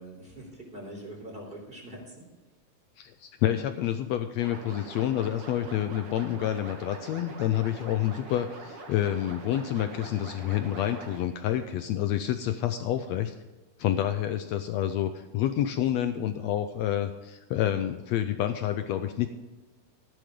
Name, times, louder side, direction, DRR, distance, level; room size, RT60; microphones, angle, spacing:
voice 1, 0.0-2.3, right 1 dB, 15° right, 0 dB, 3.6 m, -43 dB
voice 2, 3.0-13.3 13.8-19.3, left 11 dB, 80° left, 9 dB, 1.6 m, -28 dB
sound 1, 4.4-11.2, right 2 dB, 80° right, 3.8 m, -44 dB
14.0 x 12.0 x 3.7 m, 1.2 s
omnidirectional pair, 3.6 m